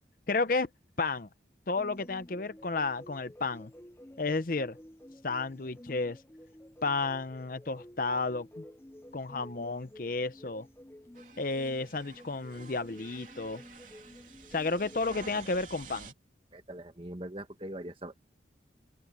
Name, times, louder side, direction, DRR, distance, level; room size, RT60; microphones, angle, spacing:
voice 1, 0.3-0.7 1.0-1.3 1.7-3.7 4.2-4.8 5.2-6.2 6.8-8.6 9.1-10.7 11.4-13.6 14.5-16.1, left 3 dB, 50° left, 0.7 m, -32 dB
sound 1, 1.7-15.3, left 1 dB, 15° left, 0.7 m, -51 dB
sound 2, 11.2-16.1, right 5 dB, 45° right, 3.1 m, -51 dB
voice 2, 16.5-18.1, right 1 dB, 30° right, 1.7 m, -42 dB
head